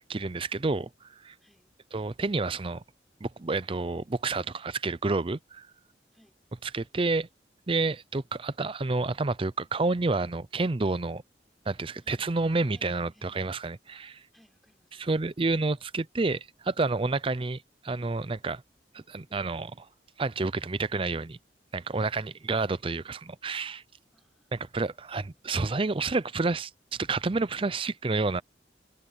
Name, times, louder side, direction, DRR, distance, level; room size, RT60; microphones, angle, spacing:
voice 1, 0.1-0.9 1.2-1.3 1.9-2.8 3.2-5.7 6.7-7.3 7.7-11.2 11.7-14.2 15.1-18.6 19.1-19.9 20.2-21.4 21.7-23.8 24.5-28.4, right 3 dB, 30° right, 0.5 m, -29 dB
voice 2, 12.5-13.4 14.3-15.2 21.9-22.5 24.1-24.5, equal, ahead, 5.2 m, -63 dB
head